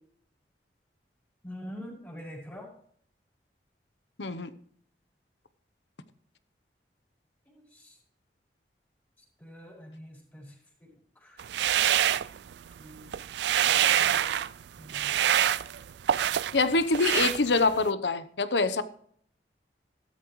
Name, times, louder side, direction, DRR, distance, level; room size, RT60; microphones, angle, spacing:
voice 1, 1.4-2.7 7.5-8.0 9.4-10.5 10.8-10.9 11.2-11.4 12.8-13.1 13.6-14.3 14.8-15.3, equal, 10° left, -3 dB, 4.7 m, -45 dB
voice 2, 4.2-4.5 16.5-18.8, left 3 dB, 85° left, 13 dB, 0.9 m, -25 dB
sound 1, 11.4-12.8 13.1-14.5 14.9-16.6 16.9-17.9, right 10 dB, 80° right, 0.4 m, -26 dB
14.5 x 13.0 x 3.2 m, 0.62 s
head